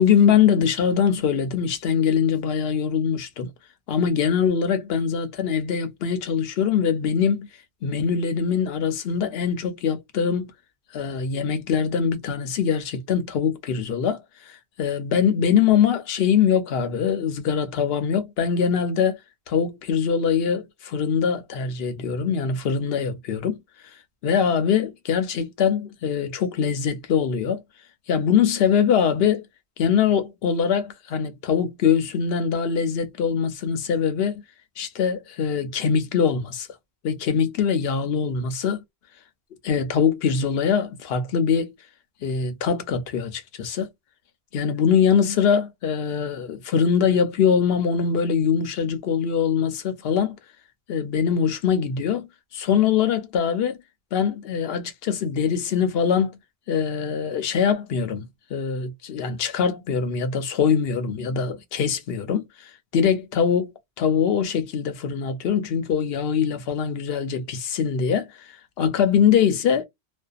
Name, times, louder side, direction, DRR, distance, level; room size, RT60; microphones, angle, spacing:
voice 1, 0.0-3.5 3.9-7.5 7.8-10.5 10.9-19.2 19.5-23.6 24.2-27.6 28.1-29.4 29.8-34.4 34.8-36.7 37.0-38.8 39.6-41.7 42.2-43.9 44.5-50.4 50.9-53.8 54.1-56.4 56.7-63.7 64.0-69.8, left 7 dB, 65° left, 0.8 m, -23 dB
2.5 x 2.3 x 2.3 m
omnidirectional pair, 1.1 m